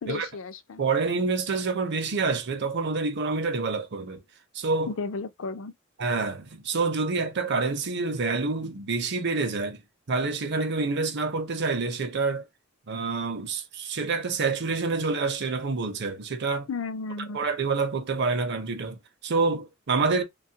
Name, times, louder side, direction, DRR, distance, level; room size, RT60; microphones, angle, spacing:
voice 1, 0.0-0.8 4.9-5.7 16.7-17.4, left 4 dB, 65° left, 0.5 m, -33 dB
voice 2, 0.8-4.2 4.5-4.9 6.0-9.8 10.1-12.4 12.9-16.7 17.3-20.2, right 4 dB, 55° right, 0.6 m, -27 dB
3.1 x 2.3 x 2.7 m
head